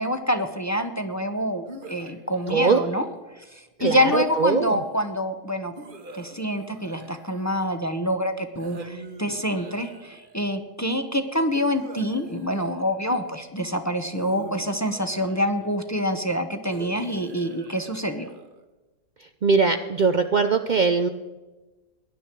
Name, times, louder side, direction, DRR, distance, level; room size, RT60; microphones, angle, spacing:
voice 1, 0.0-3.0 3.5-5.7 6.1-18.3, equal, 15° left, 6 dB, 0.7 m, -26 dB
sound 1, 1.7-3.2 3.9-4.9 5.8-8.0 8.6-10.4 11.5-13.3 14.1-15.8 16.7-18.6, right 3 dB, 35° right, 1.2 m, -44 dB
voice 2, 2.5-2.8 3.8-4.8 19.2-21.1, right 4 dB, 80° right, 7 dB, 0.4 m, -21 dB
18.0 x 11.0 x 4.6 m, 1.2 s
omnidirectional pair, 1.6 m